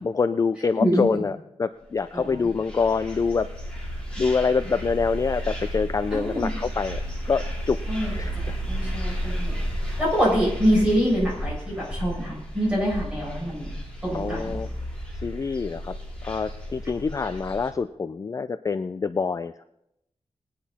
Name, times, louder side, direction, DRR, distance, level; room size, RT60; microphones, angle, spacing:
voice 1, 0.0-3.5 4.2-7.8 8.2-8.6 14.1-14.7 15.2-15.9 16.2-19.6, left 5 dB, 30° left, 11 dB, 0.4 m, -26 dB
voice 2, 0.8-1.2 2.1-2.5 6.1-6.5 7.9-9.5 9.8-13.7 14.0-14.6, equal, 10° right, -6 dB, 7.3 m, -25 dB
sound 1, 2.0-17.7, equal, 10° left, 4.4 m, -33 dB
19.5 x 10.0 x 4.2 m, 0.80 s
wide cardioid pair, 170°, 11 cm